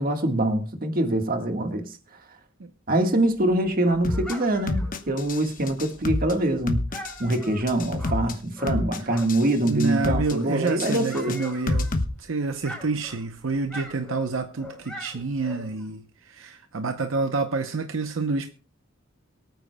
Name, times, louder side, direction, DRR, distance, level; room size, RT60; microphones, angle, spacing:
voice 1, 0.0-1.9 2.9-6.9 7.2-11.4, right 1 dB, 45° right, 1.6 m, -24 dB
Dog, 3.3-9.6 9.9-12.2 12.5-15.9, equal, 5° left, 3.8 m, -42 dB
sound 1, 4.0-4.3 4.7-5.4 5.7-6.3 6.7-7.4 7.7-8.3 8.7-9.4 9.7-10.3 10.7-12.0, left 2 dB, 45° left, 1.0 m, -27 dB
voice 2, 9.7-11.9 12.2-18.5, right 3 dB, 75° right, 0.8 m, -28 dB
23.0 x 9.0 x 2.2 m
head